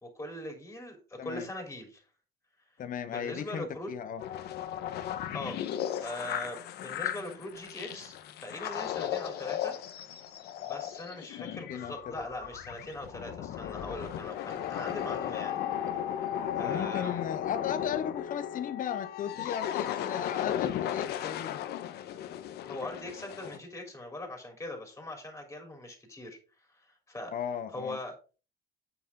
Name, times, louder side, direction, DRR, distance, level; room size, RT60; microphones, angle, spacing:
voice 1, 0.0-2.0 3.1-3.9 5.3-5.6 6.0-9.8 10.6-15.6 16.5-17.3 22.6-26.4 26.7-27.3 27.7-28.1, left 1 dB, 15° left, 3 dB, 3.5 m, -41 dB
voice 2, 2.8-4.2 11.4-12.2 16.6-21.6 27.3-28.0, left 8 dB, 55° left, 11 dB, 0.8 m, -36 dB
sound 1, 4.2-23.6, left 10 dB, 75° left, 1.1 m, -35 dB
8.4 x 7.3 x 3.6 m, 0.35 s
cardioid pair, 110°, 17 cm